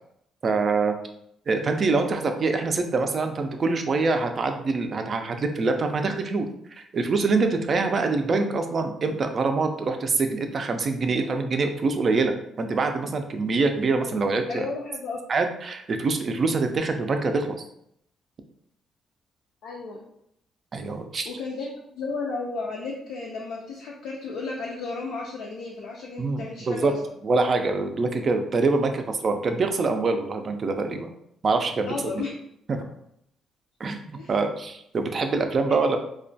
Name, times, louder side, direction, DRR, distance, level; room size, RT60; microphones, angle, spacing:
voice 1, 0.4-0.9 1.5-6.5 6.8-14.7 15.3-17.5 20.7-21.3 26.2-26.9 27.2-31.1 31.4-31.9 32.7-32.8 33.8-36.0, right 3 dB, 45° right, 6 dB, 0.3 m, -25 dB
voice 2, 14.5-15.2 19.6-20.0 21.3-27.0 31.8-32.3 34.1-34.4 35.7-35.9, left 4 dB, 85° left, -3 dB, 0.4 m, -33 dB
2.2 x 2.1 x 2.6 m, 0.74 s
cardioid pair, 90°, 0 cm